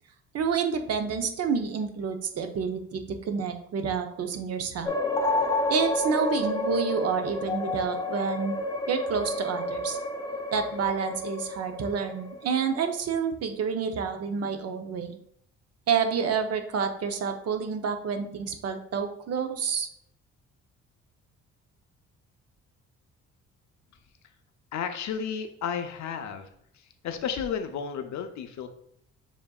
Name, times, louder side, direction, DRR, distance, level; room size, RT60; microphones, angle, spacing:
voice 1, 0.3-4.9 5.7-8.6 8.9-10.0 10.5-15.2 15.9-19.9, right 6 dB, 55° right, 6 dB, 0.6 m, -29 dB
sound 1, 4.9-13.0, left 2 dB, 10° left, 0.4 m, -30 dB
voice 2, 24.7-26.5 27.0-28.7, left 7 dB, 65° left, 8 dB, 0.6 m, -32 dB
7.0 x 2.7 x 2.3 m, 0.70 s
cardioid pair, 90°, 30 cm